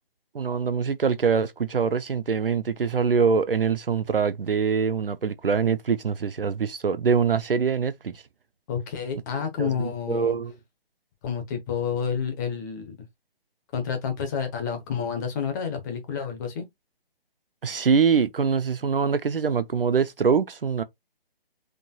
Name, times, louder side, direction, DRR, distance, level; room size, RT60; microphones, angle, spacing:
voice 1, 0.3-8.1 9.6-10.5 17.6-20.8, right 6 dB, 65° right, 0.7 m, -24 dB
voice 2, 8.7-10.4 11.2-12.9 13.7-16.7, left 7 dB, 20° left, 1.1 m, -29 dB
5.2 x 3.8 x 2.3 m
figure-of-eight pair, 145°, 30 cm